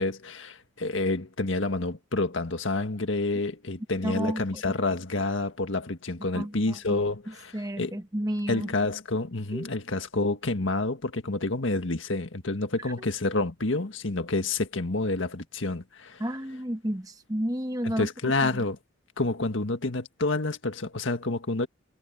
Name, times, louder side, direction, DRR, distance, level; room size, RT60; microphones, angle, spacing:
voice 1, 0.0-8.0 8.5-16.2 17.8-18.8 19.2-21.7, left 2 dB, 80° left, 1.7 m, -28 dB
voice 2, 4.0-4.6 6.3-7.0 7.3-8.7 9.5-9.7 16.2-18.1 18.4-18.6, equal, 20° right, 1.4 m, -32 dB
head